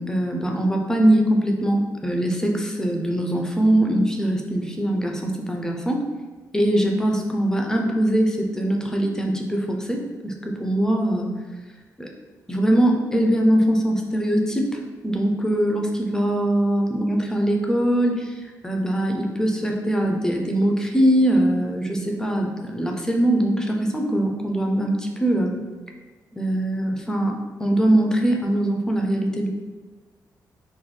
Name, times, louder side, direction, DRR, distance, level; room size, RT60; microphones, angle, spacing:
voice 1, 0.0-6.0 6.5-11.3 12.0-12.1 12.5-25.6 26.3-29.5, right 1 dB, 10° left, 2 dB, 0.4 m, -22 dB
3.7 x 2.2 x 3.2 m, 1.3 s
wide cardioid pair, 125°, 7 cm